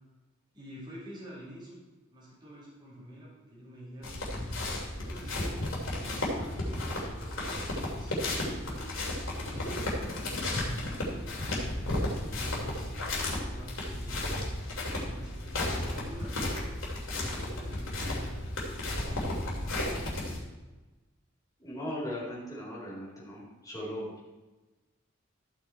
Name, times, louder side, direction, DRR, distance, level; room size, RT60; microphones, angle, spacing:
voice 1, 0.5-1.8 2.1-4.2 4.9-9.0 9.4-11.8 12.3-14.5 14.9-16.4 17.2-18.4 19.0-20.3, equal, 25° right, -8 dB, 4.0 m, -48 dB
sound 1, 4.0-20.4, left 1 dB, 75° left, 2.8 m, -33 dB
voice 2, 21.6-24.3, equal, 20° left, -5 dB, 3.8 m, -38 dB
14.0 x 6.2 x 4.4 m, 1.1 s
head